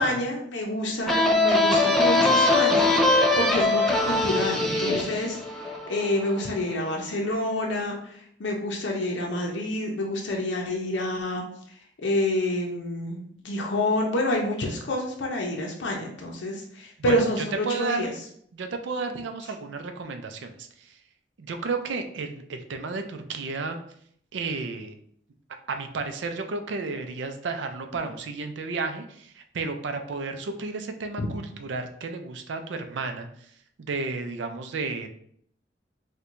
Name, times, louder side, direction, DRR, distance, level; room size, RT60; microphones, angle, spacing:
voice 1, 0.0-5.4 5.9-7.9 8.4-11.4 12.0-18.1 31.2-31.3, left 1 dB, 85° left, 0 dB, 0.6 m, -28 dB
sound 1, 1.1-6.5, left 2 dB, ahead, 0.3 m, -22 dB
voice 2, 17.1-18.1 18.5-21.0 21.4-23.8 24.3-24.9 25.7-33.5 33.8-35.1, right 4 dB, 85° right, 6 dB, 0.4 m, -32 dB
4.4 x 2.2 x 2.5 m, 0.65 s
head